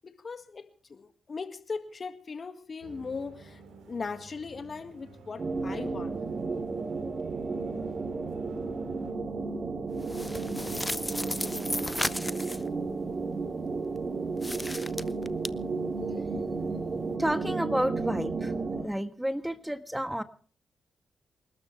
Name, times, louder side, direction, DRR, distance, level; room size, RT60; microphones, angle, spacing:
voice 1, 0.0-3.6 3.9-6.2, left 4 dB, 50° left, 10 dB, 2.0 m, -39 dB
sound 1, 2.8-9.1, right 4 dB, 80° right, 3.8 m, -50 dB
sound 2, 5.4-18.9, right 4 dB, 50° right, 2.4 m, -33 dB
sound 3, 10.0-12.7 14.4-15.5, left 1 dB, 15° left, 0.7 m, -34 dB
voice 2, 17.2-18.5 18.8-20.2, equal, 5° right, 11 dB, 1.4 m, -30 dB
28.5 x 12.5 x 3.4 m, 0.42 s
supercardioid pair, 45°, 0 cm